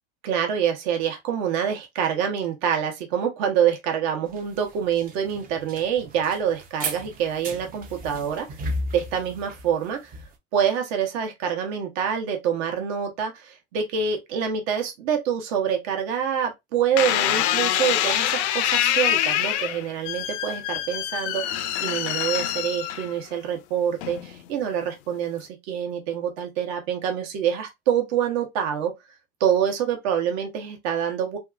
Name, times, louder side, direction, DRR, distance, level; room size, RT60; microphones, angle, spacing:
voice 1, 0.2-10.0 10.5-28.9 29.4-31.4, right 8 dB, 60° right, 1.0 m, -26 dB
sound 1, 4.3-10.3, right 1 dB, 25° right, 0.5 m, -35 dB
sound 2, 17.0-23.4 24.0-24.5, left 12 dB, 70° left, 0.5 m, -25 dB
2.7 x 2.4 x 2.4 m
hypercardioid pair, 100°, 36 cm